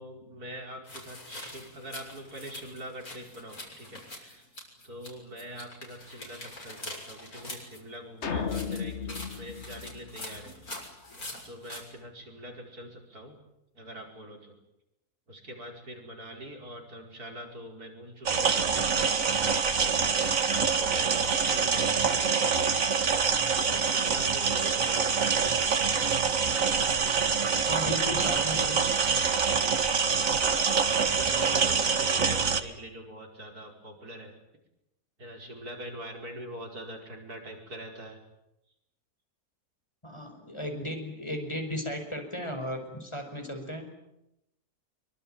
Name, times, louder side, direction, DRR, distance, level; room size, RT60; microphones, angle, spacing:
voice 1, 0.0-4.5 4.8-10.5 11.4-13.4 13.8-14.5 15.3-20.1 20.8-22.8 23.6-25.9 29.9-30.3 30.8-34.3 35.2-38.2, right 1 dB, 75° right, 2 dB, 5.7 m, -44 dB
sound 1, 0.8-5.1 5.4-7.8 8.4-11.8, left 1 dB, 70° left, 7.1 m, -44 dB
sound 2, 8.2-10.7, left 6 dB, 50° left, 1.5 m, -34 dB
sound 3, 18.3-32.6, right 5 dB, 60° right, 2.0 m, -25 dB
voice 2, 27.7-28.9 30.3-31.1 40.0-43.9, equal, 20° left, 4 dB, 5.5 m, -36 dB
24.5 x 24.5 x 9.1 m, 0.85 s
omnidirectional pair, 1.6 m